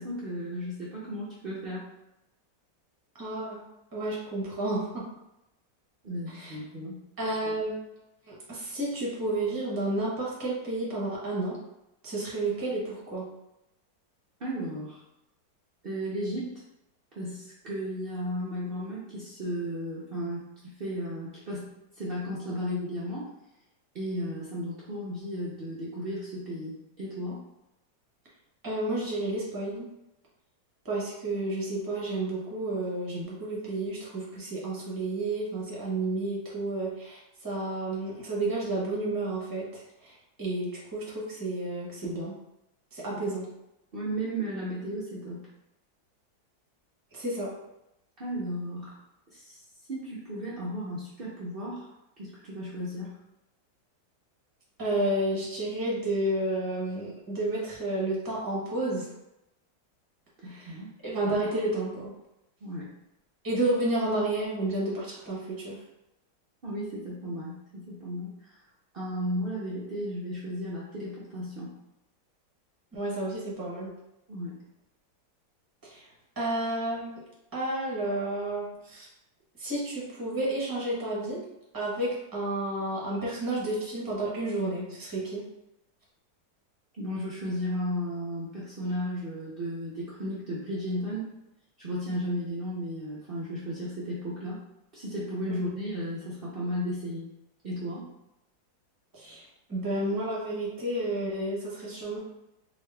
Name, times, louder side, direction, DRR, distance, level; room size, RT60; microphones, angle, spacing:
voice 1, 0.0-1.9 6.0-7.0 14.4-15.0 15.8-16.6 17.1-21.7 22.0-23.3 23.9-27.4 43.0-43.2 43.9-45.4 48.2-49.0 49.3-49.6 49.9-51.9 52.2-53.1 60.4-60.9 62.6-62.9 66.6-68.6 68.9-71.7 74.3-74.5 86.9-91.3 91.8-94.6 94.9-97.3 97.6-98.1, equal, 75° right, -8 dB, 0.5 m, -34 dB
voice 2, 3.1-3.6 3.9-5.0 6.3-6.6 7.2-7.8 8.3-11.6 12.0-13.3 28.6-29.9 30.8-42.3 42.9-43.5 47.1-47.5 54.8-59.1 60.4-60.7 61.0-62.1 63.4-65.8 72.9-73.9 75.8-76.1 76.4-77.1 77.5-79.1 79.6-81.4 81.7-85.4 99.1-102.2, right 2 dB, 20° right, -5 dB, 0.6 m, -31 dB
3.8 x 2.4 x 3.3 m, 0.89 s
omnidirectional pair, 2.0 m